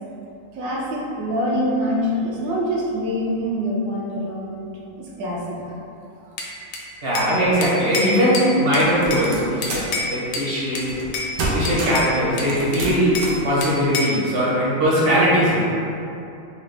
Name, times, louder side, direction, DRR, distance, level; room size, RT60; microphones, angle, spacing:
voice 1, 0.5-4.7 5.0-5.6, equal, 70° right, -4 dB, 1.2 m, -25 dB
Bell / Glass, 6.4-7.3 7.6-9.3 9.6-10.5 10.7-11.3 11.6-13.3 13.6-14.2, left 2 dB, 80° left, 1.2 m, -28 dB
voice 2, 7.0-10.9 11.5-15.8, equal, 45° right, -8 dB, 0.9 m, -20 dB
sound 1, 8.8-10.0 10.9-11.1 11.4-12.1 12.5-13.5, right 2 dB, 85° right, 1.3 m, -27 dB
5.0 x 2.0 x 3.2 m, 2.8 s
omnidirectional pair, 1.8 m